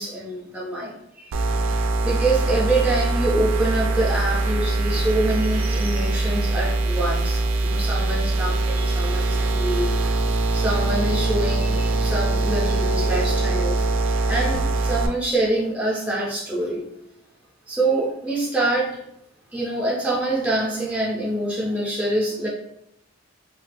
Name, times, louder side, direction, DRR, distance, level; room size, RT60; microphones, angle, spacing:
voice 1, 0.0-1.4 2.0-10.2 10.5-13.8 14.3-16.9 17.7-19.0 19.5-22.5, right 2 dB, 5° right, -5 dB, 0.4 m, -25 dB
sound 1, 1.3-15.1, right 2 dB, 80° right, 0.4 m, -22 dB
3.1 x 2.1 x 3.2 m, 0.77 s
head